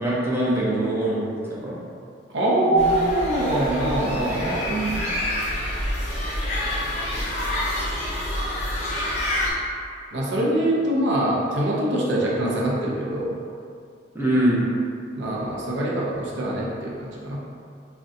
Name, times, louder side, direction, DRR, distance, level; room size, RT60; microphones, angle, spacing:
voice 1, 0.0-1.8 2.7-2.9 4.3-5.0 14.1-14.7, right 1 dB, 15° right, -8 dB, 0.5 m, -24 dB
voice 2, 2.3-4.7 10.1-13.4 15.2-17.4, right 1 dB, 85° right, -4 dB, 0.5 m, -23 dB
sound 1, 2.8-9.5, left 1 dB, 40° left, 0.7 m, -27 dB
3.6 x 2.2 x 2.6 m, 2.3 s
head